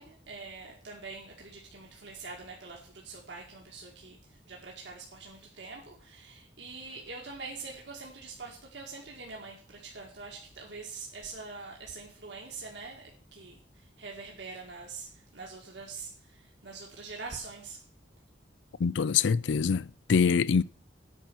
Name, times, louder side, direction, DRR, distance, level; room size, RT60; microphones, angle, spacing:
voice 1, 0.0-17.8, right 4 dB, 70° right, 2.0 m, -44 dB
voice 2, 18.8-20.6, left 6 dB, 70° left, 0.4 m, -25 dB
9.2 x 5.8 x 8.3 m
head